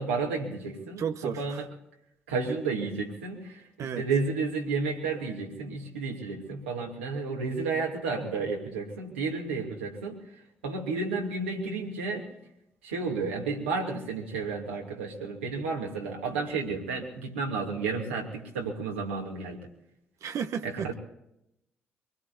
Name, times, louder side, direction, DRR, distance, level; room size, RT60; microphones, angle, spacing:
voice 1, 0.0-1.6 2.3-10.2 10.6-12.3 12.8-19.7 20.6-21.0, right 4 dB, 85° right, -1 dB, 2.8 m, -32 dB
voice 2, 1.0-1.6 3.8-4.1 20.2-20.9, right 7 dB, 60° right, 7 dB, 1.0 m, -33 dB
24.5 x 20.0 x 2.8 m, 0.83 s
hypercardioid pair, 40°, 6 cm